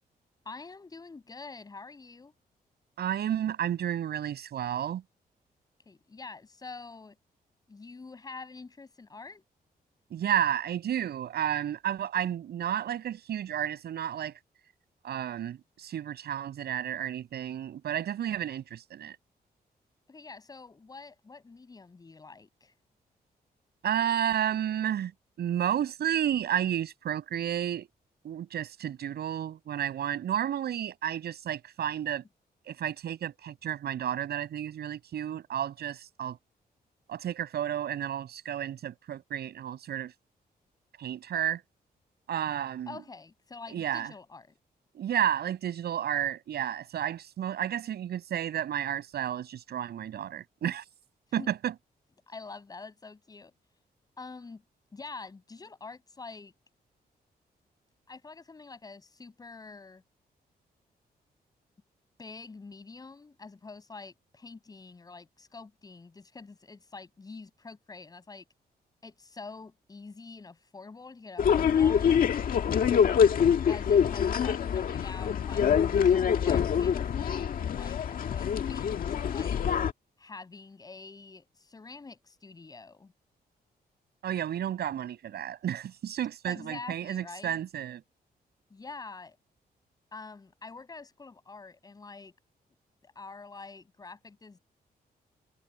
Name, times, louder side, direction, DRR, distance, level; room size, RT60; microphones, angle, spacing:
voice 1, 0.4-2.3 5.9-7.2 7.7-9.4 20.1-22.7 42.9-44.6 51.3-51.5 52.3-53.5 54.2-54.6 54.9-56.5 58.1-60.0 62.2-68.4 69.0-72.1 73.7-79.6 80.2-83.1 86.5-87.6 88.7-89.4 90.1-92.3 93.0-94.6, left 4 dB, 25° left, 7.8 m, -46 dB
voice 2, 3.0-5.0 10.1-14.4 15.0-19.2 23.8-25.1 25.4-27.9 28.2-32.2 32.7-36.4 37.1-40.1 41.0-41.6 42.3-43.0 43.7-44.1 44.9-50.8 51.3-51.7 84.2-88.0, right 10 dB, 85° right, 7.4 m, -31 dB
sound 1, 71.4-79.9, left 8 dB, 60° left, 1.8 m, -25 dB
wide cardioid pair, 175°, 16 cm